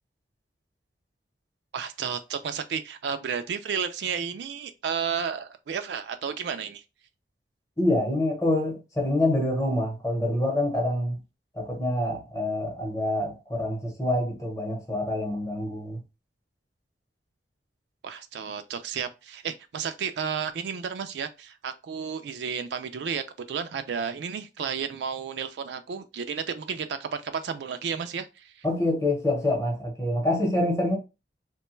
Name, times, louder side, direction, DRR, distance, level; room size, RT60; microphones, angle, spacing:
voice 1, 1.7-6.8 18.0-28.6, right 6 dB, 70° right, 0.3 m, -32 dB
voice 2, 7.8-11.2 11.5-16.0 28.6-31.0, left 1 dB, 20° left, 0.8 m, -26 dB
3.1 x 2.2 x 3.0 m
head